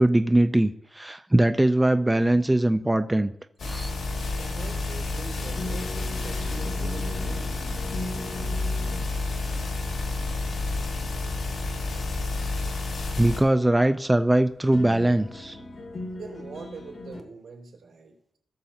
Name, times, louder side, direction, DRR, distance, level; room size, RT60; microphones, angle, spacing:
voice 1, 0.0-3.3 3.7-3.9 13.2-15.6, right 1 dB, 10° right, 9 dB, 0.4 m, -21 dB
sound 1, 3.6-13.4, left 2 dB, 75° left, 2.2 m, -30 dB
voice 2, 4.3-7.5 16.1-18.4, right 4 dB, 90° right, 0 dB, 2.9 m, -43 dB
sound 2, 5.4-17.2, left 2 dB, 50° left, 1.2 m, -41 dB
18.5 x 6.8 x 2.8 m, 0.75 s
wide cardioid pair, 130°, 0 cm